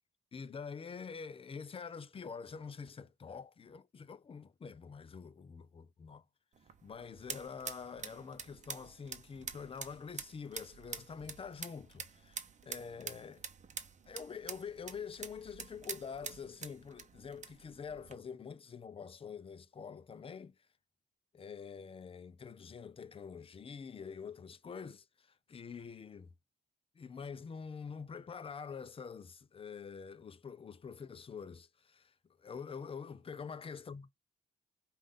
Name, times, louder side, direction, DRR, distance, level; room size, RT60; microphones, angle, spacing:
voice 1, 0.3-6.2 6.8-13.5 14.1-20.6 21.3-26.3 26.9-34.1, left 6 dB, 30° left, 0.5 m, -46 dB
sound 1, 6.5-18.2, right 6 dB, 35° right, 0.8 m, -47 dB
5.2 x 2.5 x 3.6 m
cardioid pair, 90°, 20 cm